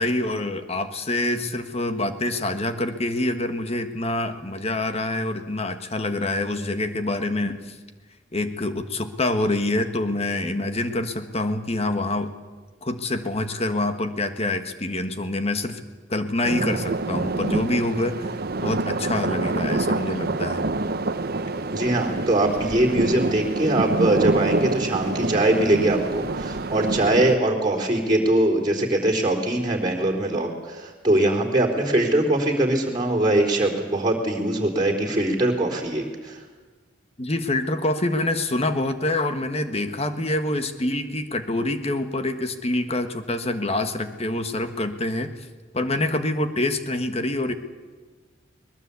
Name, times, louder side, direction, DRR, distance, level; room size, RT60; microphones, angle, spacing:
voice 1, 0.0-7.8 8.3-12.3 12.8-15.8 16.1-18.3 18.6-20.6 37.2-45.3 45.7-47.5, left 2 dB, 30° left, 9 dB, 1.5 m, -26 dB
sound 1, 16.4-27.4, right 2 dB, 50° right, 0.8 m, -26 dB
voice 2, 21.7-36.4, right 1 dB, 20° right, -1 dB, 3.8 m, -22 dB
21.5 x 21.0 x 8.4 m, 1.4 s
head